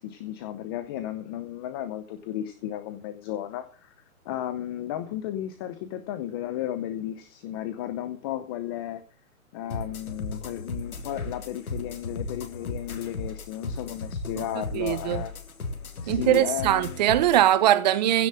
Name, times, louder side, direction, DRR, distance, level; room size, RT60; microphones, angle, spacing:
voice 1, 0.0-3.9 4.2-9.0 9.5-15.3 16.0-17.0, left 12 dB, 15° left, 0.7 m, -34 dB
sound 1, 9.7-17.5, left 3 dB, 80° left, 3.5 m, -36 dB
voice 2, 14.7-15.2 16.1-18.3, right 12 dB, 30° right, 1.1 m, -21 dB
16.0 x 7.2 x 7.6 m
hypercardioid pair, 155°, 42 cm